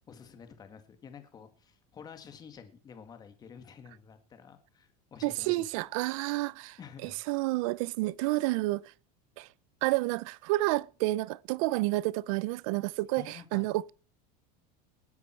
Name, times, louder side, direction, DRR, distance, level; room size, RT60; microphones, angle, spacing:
voice 1, 0.1-5.9 6.8-7.4 13.2-13.7, left 6 dB, 20° left, 1.9 m, -50 dB
voice 2, 5.2-8.8 9.4-9.5 9.8-13.9, right 20 dB, 55° right, 0.6 m, -30 dB
19.0 x 10.5 x 4.5 m
cardioid pair, 175°, 20 cm